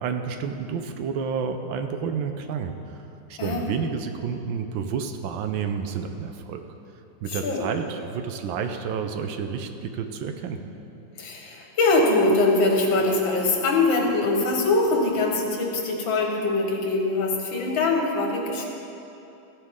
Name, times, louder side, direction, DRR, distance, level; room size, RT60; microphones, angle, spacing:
voice 1, 0.0-3.0 3.3-6.7 7.2-10.6, right 6 dB, 80° right, 7 dB, 1.4 m, -30 dB
voice 2, 7.3-7.7 11.2-18.6, left 2 dB, 80° left, 0 dB, 2.1 m, -23 dB
15.0 x 9.9 x 3.7 m, 2.8 s
omnidirectional pair, 2.1 m